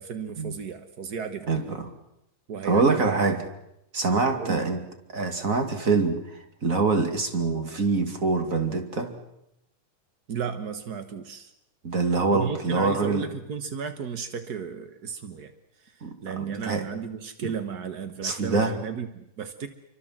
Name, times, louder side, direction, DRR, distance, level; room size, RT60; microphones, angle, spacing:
voice 1, 0.0-1.5 2.5-3.0 4.3-4.6 10.3-11.5 12.3-15.5 15.8-19.7, right 6 dB, 60° right, 9 dB, 1.0 m, -34 dB
voice 2, 1.5-1.9 2.6-3.5 3.9-4.8 5.1-9.2 11.8-13.3 16.0-16.9 17.4-17.5 18.2-18.7, right 4 dB, 25° right, 6 dB, 2.5 m, -25 dB
28.5 x 24.5 x 7.6 m, 0.84 s
omnidirectional pair, 3.8 m